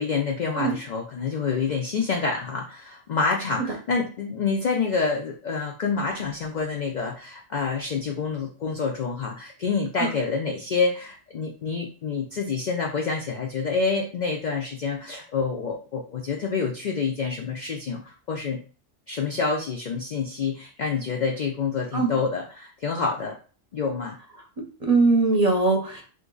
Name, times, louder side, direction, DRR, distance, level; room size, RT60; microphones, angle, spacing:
voice 1, 0.0-18.6 19.1-23.4 23.7-24.2, left 5 dB, 60° left, 1 dB, 0.4 m, -27 dB
voice 2, 24.8-26.0, right 3 dB, 40° right, 0 dB, 0.7 m, -21 dB
2.9 x 2.5 x 3.7 m, 0.38 s
omnidirectional pair, 1.3 m